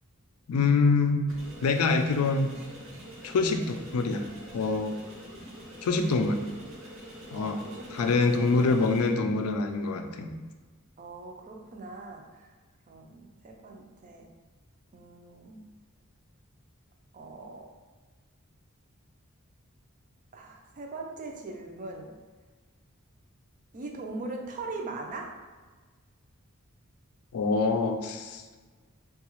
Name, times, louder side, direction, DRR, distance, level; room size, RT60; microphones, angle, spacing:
voice 1, 0.5-1.2 1.6-2.5 3.2-4.3 4.5-5.0 5.8-6.4 7.3-7.6 7.9-10.3 27.3-28.4, left 4 dB, 85° left, 6 dB, 0.4 m, -25 dB
sound 1, 1.3-9.1, equal, 65° right, 0.8 m, -46 dB
voice 2, 6.3-6.7 7.4-8.8 11.0-12.4 12.9-14.3 14.9-15.7 17.1-17.7 20.3-22.1 23.7-25.3, right 3 dB, 35° right, 2 dB, 0.4 m, -41 dB
3.8 x 2.3 x 2.9 m, 1.4 s
head